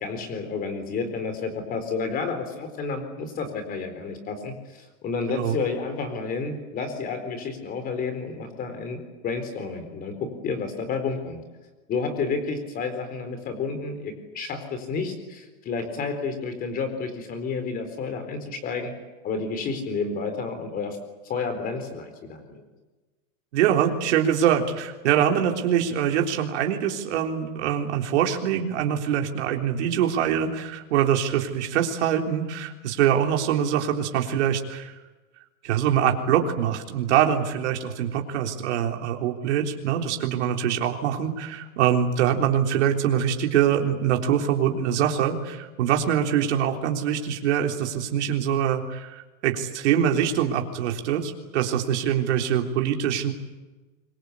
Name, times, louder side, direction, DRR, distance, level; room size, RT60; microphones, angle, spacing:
voice 1, 0.0-11.4 11.9-18.9 19.2-21.0 21.2-22.7, left 4 dB, 20° left, 8 dB, 4.2 m, -30 dB
voice 2, 23.5-34.9 35.6-53.3, right 9 dB, 55° right, 3 dB, 3.7 m, -24 dB
25.5 x 23.5 x 8.4 m, 1.2 s
supercardioid pair, 165°, 42 cm